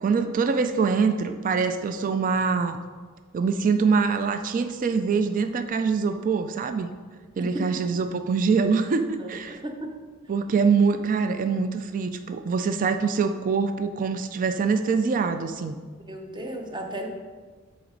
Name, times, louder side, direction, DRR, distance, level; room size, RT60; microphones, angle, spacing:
voice 1, 0.0-2.8 3.3-6.9 7.4-9.6 10.3-15.8, right 5 dB, 40° right, 8 dB, 0.3 m, -24 dB
voice 2, 9.2-9.9 16.0-17.1, right 1 dB, 20° right, 3 dB, 0.8 m, -35 dB
7.7 x 4.1 x 5.1 m, 1.5 s
head